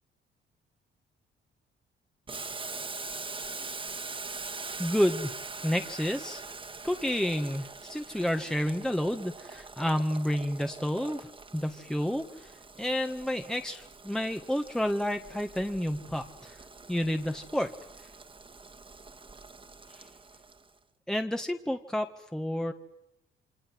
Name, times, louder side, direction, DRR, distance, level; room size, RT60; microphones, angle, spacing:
Boiling, 2.3-20.7, right 3 dB, 25° right, 2.2 m, -43 dB
voice 1, 4.8-5.3 5.6-6.4 6.8-12.5 12.8-16.6 16.9-17.7 19.9-20.0 21.1-22.7, equal, 5° left, 5 dB, 1.7 m, -30 dB
28.5 x 26.0 x 7.9 m, 0.85 s
cardioid pair, 90°, 20 cm